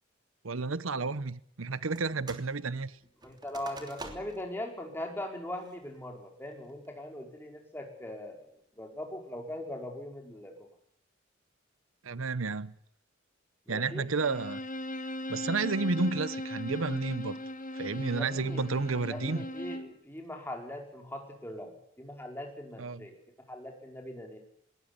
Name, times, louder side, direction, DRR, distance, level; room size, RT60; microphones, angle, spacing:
voice 1, 0.4-2.9 12.0-12.7 13.7-14.6 15.3-17.4 17.7-19.4 22.8-23.0, right 3 dB, 80° right, 0.9 m, -31 dB
sound 1, 2.0-2.5 2.8-4.5 5.0-5.1 5.6-6.0 6.5-6.9, right 2 dB, 20° right, 3.1 m, -47 dB
voice 2, 3.2-10.7 13.7-14.1 18.1-18.7 19.1-23.2 23.5-24.4, left 1 dB, 10° left, 5.0 m, -41 dB
Bowed string instrument, 14.2-20.0, left 1 dB, 40° left, 2.0 m, -38 dB
20.0 x 19.5 x 9.8 m
head